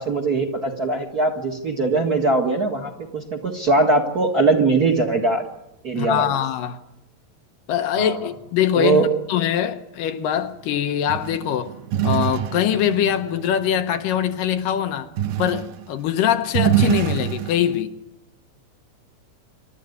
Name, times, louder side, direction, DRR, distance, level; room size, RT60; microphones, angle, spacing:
voice 1, 0.0-5.5 5.8-6.3 7.9-8.2 8.7-9.1, right 3 dB, 35° right, 1.6 m, -21 dB
voice 2, 5.9-6.8 7.7-11.7 12.0-15.1 15.4-18.0, left 10 dB, 80° left, 2.6 m, -23 dB
sound 1, 11.1-14.3 15.2-15.8 16.2-17.8, right 11 dB, 75° right, 2.6 m, -24 dB
27.0 x 13.0 x 9.5 m
omnidirectional pair, 3.9 m